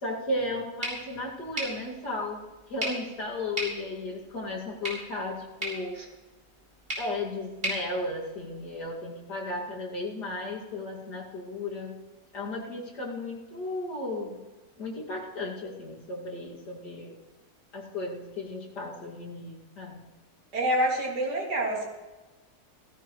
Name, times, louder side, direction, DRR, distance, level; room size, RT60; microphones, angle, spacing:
voice 1, 0.0-2.4 2.7-6.0 7.0-11.9 12.3-14.4 14.8-17.1 17.7-20.0, left 2 dB, 85° left, -2 dB, 3.1 m, -35 dB
sound 1, 0.8-8.9, equal, 35° right, 4.8 m, -38 dB
voice 2, 20.5-21.9, right 1 dB, 85° right, -1 dB, 3.2 m, -27 dB
17.0 x 15.5 x 3.2 m, 1.2 s
omnidirectional pair, 1.7 m